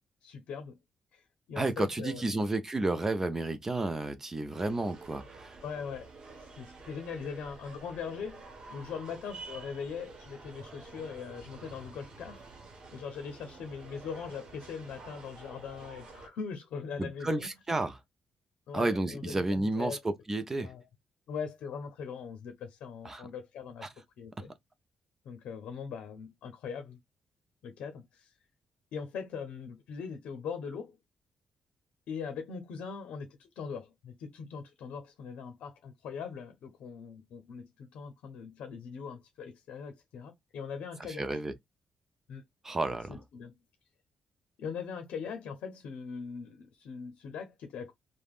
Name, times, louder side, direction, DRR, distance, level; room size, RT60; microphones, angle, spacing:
voice 1, 0.2-0.8 1.1-2.4 5.6-6.1 6.4-12.5 12.9-17.5 18.7-20.0 20.6-20.8 21.3-23.8 24.2-24.5 25.2-27.0 27.6-28.3 28.9-31.0 32.1-41.2 42.3-42.4 43.1-43.5 44.6-47.9, left 6 dB, 90° left, 0.6 m, -41 dB
voice 2, 1.6-5.6 17.0-18.0 18.7-20.7 23.0-23.3 23.8-23.9 41.1-41.5 42.6-43.2, right 2 dB, 20° right, 0.4 m, -31 dB
sound 1, 4.5-16.3, right 3 dB, 45° right, 0.9 m, -49 dB
3.3 x 2.1 x 2.3 m
cardioid pair, 130°, 2 cm